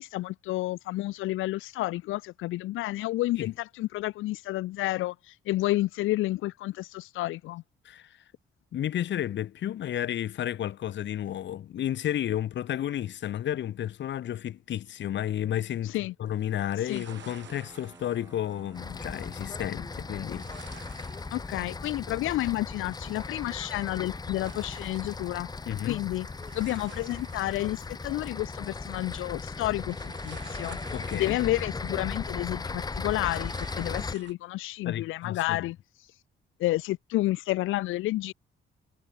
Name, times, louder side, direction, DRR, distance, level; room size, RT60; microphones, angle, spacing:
voice 1, 0.0-7.6 15.8-16.1 16.8-17.0 21.3-25.5 25.8-26.3 26.5-36.2 36.6-38.3, left 17 dB, 85° left, 0.7 m, -30 dB
voice 2, 8.7-21.1 25.7-26.0 30.9-31.4 34.8-35.6, left 11 dB, 65° left, 1.5 m, -32 dB
sound 1, 16.2-34.3, right 10 dB, 65° right, 6.5 m, -53 dB
sound 2, 17.0-27.7, right 2 dB, 15° right, 2.8 m, -55 dB
sound 3, 18.7-34.1, left 4 dB, 20° left, 0.7 m, -37 dB
cardioid pair, 90°, 20 cm